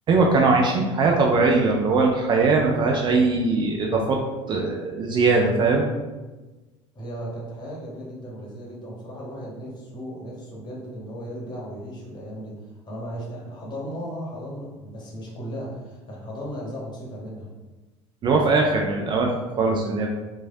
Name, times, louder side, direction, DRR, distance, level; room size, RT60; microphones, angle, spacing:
voice 1, 0.1-4.2 4.5-5.9 18.2-20.1, right 3 dB, 30° right, 0 dB, 0.4 m, -20 dB
voice 2, 6.9-17.5, equal, 30° left, -3 dB, 1.1 m, -36 dB
3.1 x 2.3 x 2.6 m, 1.2 s
figure-of-eight pair, 70°, 16 cm